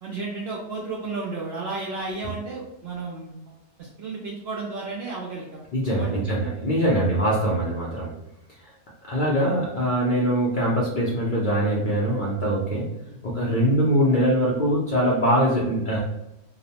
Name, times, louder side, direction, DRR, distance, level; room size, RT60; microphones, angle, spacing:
voice 1, 0.0-5.6 6.0-6.1 13.1-13.2, right 3 dB, 85° right, -3 dB, 0.5 m, -33 dB
voice 2, 5.7-8.1 8.6-8.7 9.0-12.9 13.2-16.0, equal, 75° left, -6 dB, 0.4 m, -22 dB
2.8 x 2.0 x 2.8 m, 0.90 s
omnidirectional pair, 1.6 m